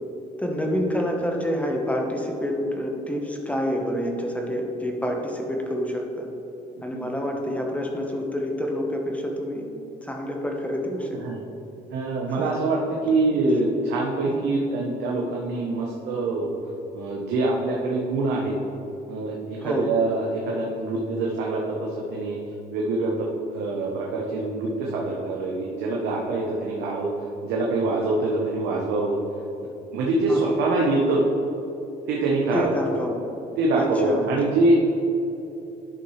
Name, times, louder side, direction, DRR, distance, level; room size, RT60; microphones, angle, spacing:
voice 1, 0.4-6.3 6.8-9.6 10.0-11.2 14.3-14.5 19.6-19.9 30.3-30.4 32.5-33.2 33.8-34.3, equal, 10° left, 1 dB, 1.0 m, -28 dB
voice 2, 11.9-16.5 16.9-18.6 19.1-22.4 22.7-27.1 27.4-29.2 29.9-31.2 32.1-32.7 33.6-34.8, right 2 dB, 85° right, -2 dB, 0.9 m, -24 dB
10.5 x 5.6 x 3.2 m, 3.0 s
cardioid pair, 110°, 17 cm